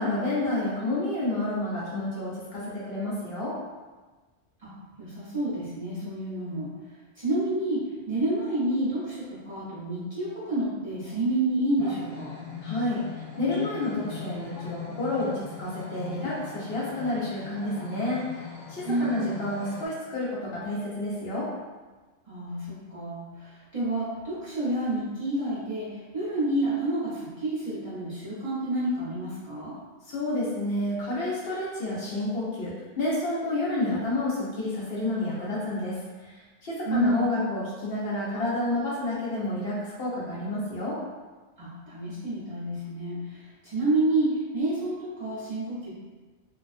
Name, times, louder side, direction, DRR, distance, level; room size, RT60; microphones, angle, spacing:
voice 1, 0.0-3.6 12.6-21.5 30.1-41.0, left 1 dB, 65° left, -7 dB, 0.8 m, -30 dB
voice 2, 4.6-6.7 7.2-12.3 18.8-19.3 22.3-29.8 36.8-37.4 41.6-45.9, right 1 dB, 35° right, -11 dB, 0.7 m, -29 dB
sound 1, 11.8-19.9, left 5 dB, 45° left, 0.5 m, -40 dB
2.4 x 2.2 x 2.4 m, 1.3 s
omnidirectional pair, 1.1 m